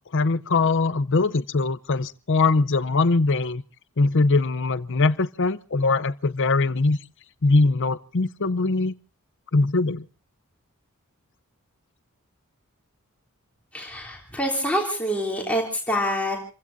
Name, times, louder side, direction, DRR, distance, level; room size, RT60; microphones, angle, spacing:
voice 1, 0.1-3.6 4.0-7.0 7.4-8.9 9.5-10.0, left 3 dB, 60° left, 0.7 m, -21 dB
voice 2, 13.7-16.4, equal, 5° left, 3.2 m, -26 dB
29.0 x 16.0 x 2.7 m
head